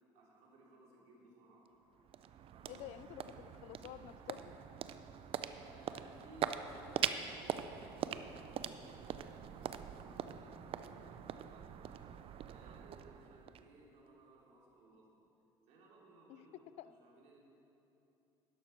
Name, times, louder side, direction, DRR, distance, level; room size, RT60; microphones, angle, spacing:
voice 1, 0.1-1.7 2.5-3.5 5.6-15.1 15.7-17.4, right 2 dB, 65° right, -4 dB, 3.3 m, -62 dB
sound 1, 1.7-14.1, right 9 dB, 50° right, 0.6 m, -43 dB
voice 2, 2.7-4.6 16.3-16.5 16.8-16.9, left 12 dB, 60° left, 14 dB, 0.5 m, -50 dB
12.0 x 11.5 x 4.5 m, 3.0 s
hypercardioid pair, 70°, 12 cm